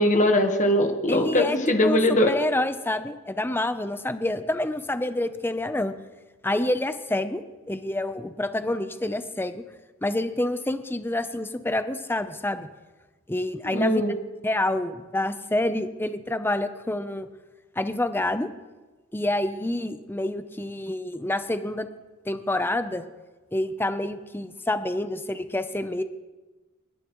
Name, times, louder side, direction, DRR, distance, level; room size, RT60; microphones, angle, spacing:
voice 1, 0.0-2.3 13.7-14.1, left 1 dB, 35° left, 4 dB, 1.4 m, -21 dB
voice 2, 1.1-5.9 6.4-7.4 7.7-9.6 10.0-12.7 13.3-14.0 14.4-17.3 17.8-18.5 19.1-21.9 22.3-23.0 23.5-26.0, left 1 dB, 10° left, 10 dB, 0.7 m, -27 dB
30.0 x 11.0 x 3.1 m, 1.2 s
head